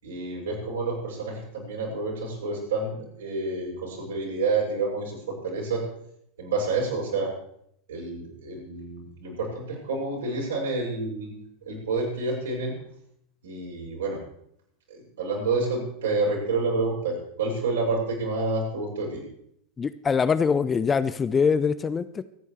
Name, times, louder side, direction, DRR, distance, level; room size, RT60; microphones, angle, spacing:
voice 1, 0.0-5.2 5.4-5.8 6.4-7.3 7.9-11.3 11.7-12.7 13.4-14.2 14.9-19.2, right 3 dB, 65° right, -3 dB, 7.0 m, -29 dB
voice 2, 19.8-22.2, left 6 dB, 20° left, 14 dB, 0.5 m, -23 dB
25.5 x 9.8 x 3.3 m, 0.72 s
figure-of-eight pair, 85°, 0 cm